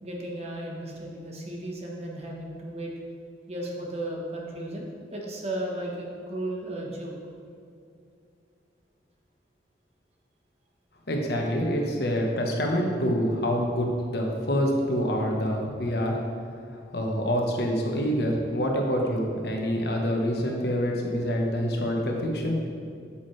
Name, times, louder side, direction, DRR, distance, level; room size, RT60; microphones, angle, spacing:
voice 1, 0.0-2.9 3.5-7.1, right 1 dB, 35° right, -1 dB, 1.1 m, -35 dB
voice 2, 11.1-16.2 16.7-22.6, equal, 60° left, 1 dB, 1.1 m, -26 dB
8.6 x 7.2 x 3.2 m, 2.4 s
head